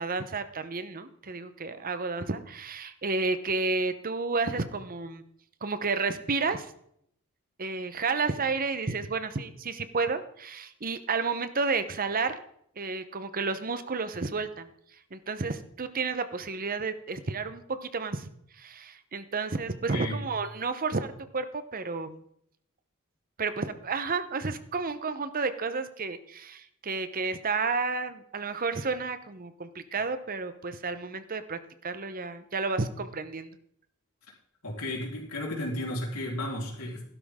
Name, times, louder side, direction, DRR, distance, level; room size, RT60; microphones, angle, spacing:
voice 1, 0.0-5.2 5.6-6.7 7.6-12.4 12.8-14.7 15.1-18.3 18.5-22.2 23.4-33.5, right 4 dB, 40° right, 11 dB, 0.9 m, -31 dB
voice 2, 19.9-20.2 34.6-37.0, left 1 dB, 75° left, -1 dB, 4.1 m, -33 dB
15.5 x 12.0 x 3.7 m, 0.69 s
head